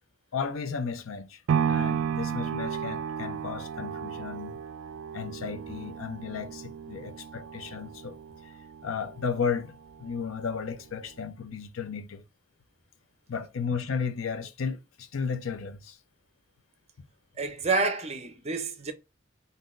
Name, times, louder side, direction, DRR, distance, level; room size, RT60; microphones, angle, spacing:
voice 1, 0.3-1.4 1.7-4.6 5.1-8.2 8.4-8.5 8.8-12.2 13.3-16.0, left 6 dB, 85° left, 0.5 m, -34 dB
sound 1, 1.5-9.6 10.1-10.2, right 7 dB, 85° right, 0.3 m, -33 dB
voice 2, 17.4-18.9, right 3 dB, 30° right, 0.6 m, -28 dB
3.7 x 2.7 x 2.4 m
head